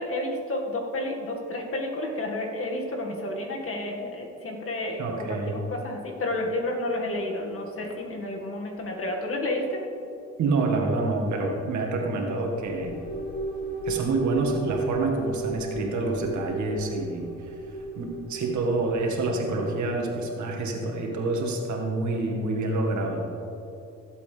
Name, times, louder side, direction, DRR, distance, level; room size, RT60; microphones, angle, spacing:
voice 1, 0.0-9.8, left 1 dB, 45° left, 0 dB, 2.0 m, -31 dB
voice 2, 5.0-5.5 10.4-13.0 13.8-17.6 18.0-23.2, right 3 dB, 70° right, 1 dB, 1.9 m, -27 dB
sound 1, 12.6-20.0, right 3 dB, 65° left, 2.5 m, -35 dB
16.0 x 8.1 x 3.4 m, 2.7 s
cardioid pair, 90°, 30 cm